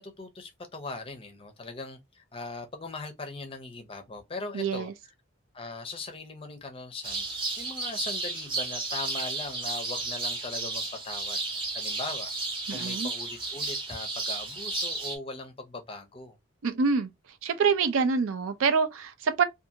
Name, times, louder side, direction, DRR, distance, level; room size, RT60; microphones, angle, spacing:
voice 1, 0.0-4.9 5.5-7.3 7.6-12.3 12.7-16.4, left 3 dB, 25° left, 0.5 m, -40 dB
voice 2, 4.5-4.9 12.7-13.1 16.6-17.1 17.4-19.4, right 5 dB, 80° right, 0.4 m, -26 dB
sound 1, 7.0-15.2, right 3 dB, 25° right, 0.6 m, -33 dB
2.5 x 2.5 x 2.7 m
head